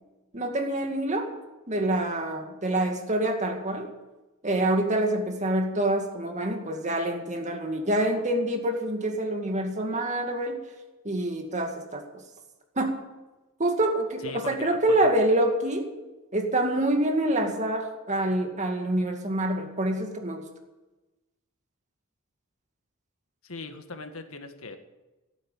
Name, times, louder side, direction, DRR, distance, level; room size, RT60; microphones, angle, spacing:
voice 1, 0.3-1.3 1.7-3.9 4.4-10.6 11.0-12.2 12.8-13.0 13.6-15.9 16.3-20.5, right 1 dB, 35° right, 3 dB, 2.2 m, -26 dB
voice 2, 14.2-15.0 23.4-24.8, left 3 dB, 85° left, 6 dB, 1.8 m, -39 dB
16.5 x 9.3 x 7.3 m, 1.1 s
head